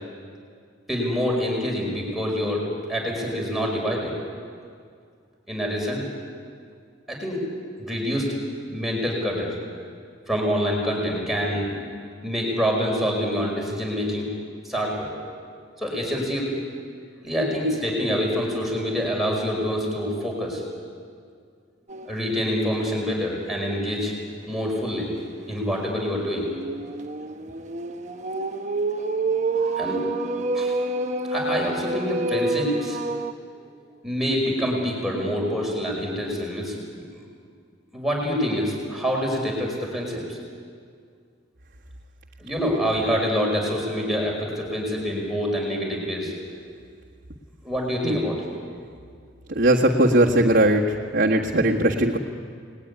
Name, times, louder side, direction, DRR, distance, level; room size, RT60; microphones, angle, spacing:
voice 1, 0.9-4.1 5.5-6.1 7.1-7.4 7.8-8.3 8.7-9.6 10.3-11.9 12.2-14.3 14.6-15.1 15.8-16.5 17.2-20.6 22.1-24.1 24.4-25.1 25.5-26.5 29.5-30.0 30.5-30.8 31.3-33.0 34.0-37.3 37.9-40.4 42.4-46.3 47.6-48.5, equal, ahead, -2 dB, 5.5 m, -26 dB
sound 1, 21.9-22.3 22.7-22.8 23.2-23.3 25.4-33.3, right 2 dB, 40° right, 1.1 m, -28 dB
voice 2, 49.5-52.2, right 1 dB, 55° right, -3 dB, 1.7 m, -19 dB
29.5 x 20.5 x 9.8 m, 2.2 s
head